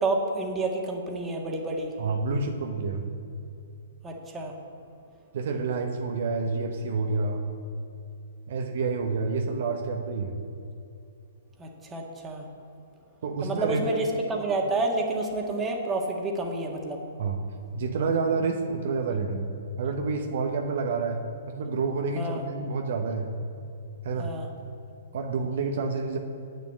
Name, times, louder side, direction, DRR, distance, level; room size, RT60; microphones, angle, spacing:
voice 1, 0.0-2.0 4.0-4.6 11.6-12.4 13.4-17.0 22.1-22.4 24.2-24.5, right 2 dB, 15° right, 1 dB, 1.7 m, -29 dB
voice 2, 2.0-3.1 5.3-7.4 8.5-10.4 13.2-14.0 17.2-17.4 17.7-19.5 19.8-23.4 24.0-24.4 25.1-26.2, right 4 dB, 60° right, 3 dB, 1.0 m, -28 dB
8.7 x 6.5 x 8.2 m, 2.8 s
figure-of-eight pair, 120°, 0 cm